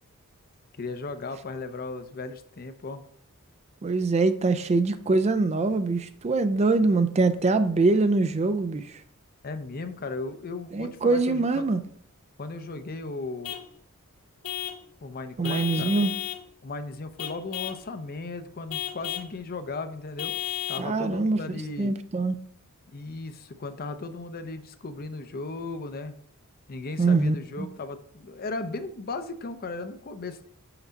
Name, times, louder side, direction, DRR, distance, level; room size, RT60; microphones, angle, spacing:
voice 1, 0.8-3.0 9.4-11.7 12.4-13.6 15.0-15.9 16.6-20.3 20.7-22.0 22.9-26.1 26.7-30.4, left 3 dB, 45° left, 0.6 m, -36 dB
voice 2, 3.8-8.8 10.7-11.8 15.4-16.1 20.8-21.4 21.8-22.4 27.0-27.7, right 3 dB, 30° right, 0.4 m, -23 dB
Vehicle horn car horn honking / Truck, 13.4-13.7 14.4-14.8 15.4-16.5 17.2-17.8 18.7-19.3 20.2-20.9, left 13 dB, 85° left, 0.8 m, -33 dB
5.8 x 5.4 x 4.0 m
head